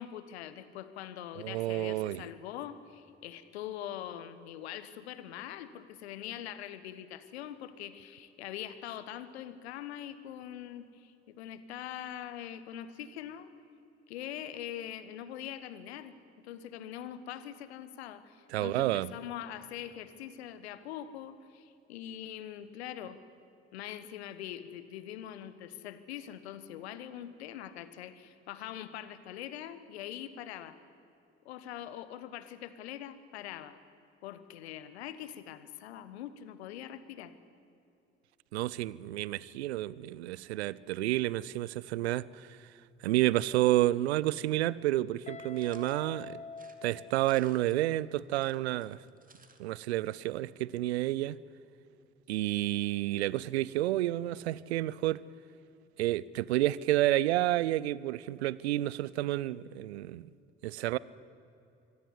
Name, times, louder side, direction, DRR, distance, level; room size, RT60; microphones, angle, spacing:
voice 1, 0.0-13.5 14.1-16.2 16.4-23.2 23.7-30.8 31.4-33.8 34.2-37.3, left 11 dB, 75° left, 1.3 m, -43 dB
voice 2, 1.4-2.3 18.5-19.1 38.5-42.6 43.0-46.4 46.8-49.0 49.6-51.4 52.3-55.2 56.0-60.3 60.6-61.0, right 15 dB, 80° right, 0.6 m, -30 dB
Guitar, 45.3-48.1, left 4 dB, 20° left, 0.8 m, -46 dB
sound 1, 45.5-46.0 46.5-47.8 48.2-49.6 49.9-50.0 50.2-50.3, right 4 dB, 25° right, 2.8 m, -59 dB
25.0 x 16.5 x 9.8 m
figure-of-eight pair, 50°, 32 cm